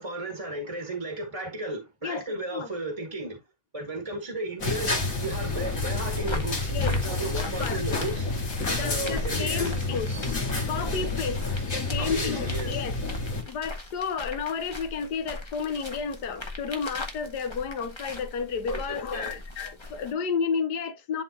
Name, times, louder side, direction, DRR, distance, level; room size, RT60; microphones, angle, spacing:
voice 1, 0.0-3.4 3.7-8.3 8.8-9.7 12.0-12.8 18.7-19.4, right 2 dB, 20° right, 1.7 m, -34 dB
sound 1, 4.6-13.4, left 3 dB, 55° left, 2.9 m, -29 dB
sound 2, 6.2-20.1, left 2 dB, 20° left, 1.2 m, -40 dB
voice 2, 7.4-7.8 8.7-10.1 10.7-13.0 13.5-21.2, left 6 dB, 80° left, 1.6 m, -32 dB
11.0 x 3.9 x 2.8 m
omnidirectional pair, 1.8 m